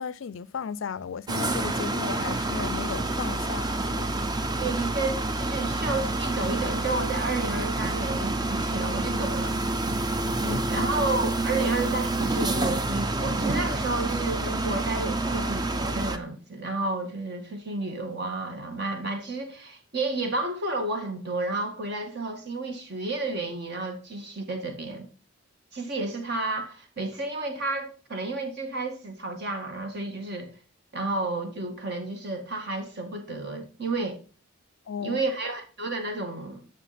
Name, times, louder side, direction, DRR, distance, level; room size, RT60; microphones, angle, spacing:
voice 1, 0.0-4.2 4.6-4.8 10.4-10.9 34.9-35.2, left 6 dB, 60° left, 0.4 m, -35 dB
sound 1, 1.3-16.2, right 2 dB, 20° right, 0.5 m, -28 dB
voice 2, 4.6-9.7 10.7-25.1 25.7-30.5 30.9-34.2 35.0-36.7, right 2 dB, 50° right, 1.9 m, -31 dB
11.0 x 6.5 x 4.2 m
head